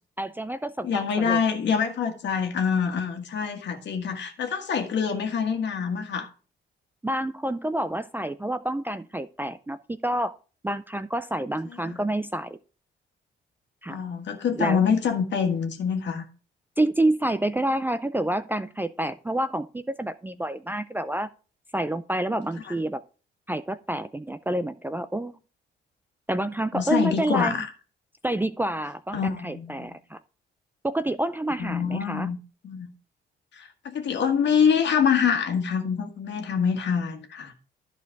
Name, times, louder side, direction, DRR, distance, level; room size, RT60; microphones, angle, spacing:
voice 1, 0.2-1.4 7.0-10.3 10.6-12.6 13.8-14.0 14.5-14.8 16.8-21.3 21.7-23.0 23.5-25.4 26.3-27.6 28.2-30.2 30.8-32.3, right 1 dB, 10° right, 0.4 m, -28 dB
voice 2, 0.8-6.3 11.9-12.0 13.9-16.2 26.7-27.7 29.1-29.9 31.6-32.4 32.6-32.9 33.5-37.5, left 6 dB, 65° left, 1.6 m, -25 dB
11.0 x 4.5 x 4.6 m
cardioid pair, 90°, 20 cm